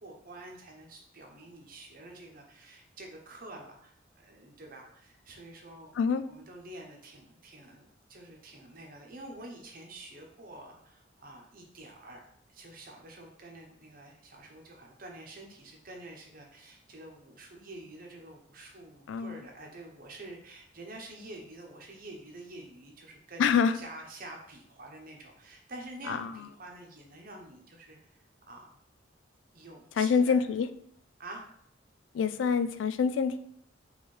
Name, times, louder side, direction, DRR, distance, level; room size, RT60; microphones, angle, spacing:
voice 1, 0.0-5.9 6.3-12.2 12.5-28.2 28.5-28.8 29.5-30.4 31.2-31.5, right 2 dB, 50° right, 1 dB, 0.9 m, -48 dB
voice 2, 19.1-19.4 23.4-23.8 26.1-26.4 30.0-30.7 32.1-33.4, left 6 dB, 85° left, 11 dB, 0.3 m, -26 dB
4.3 x 3.2 x 3.2 m, 0.67 s
head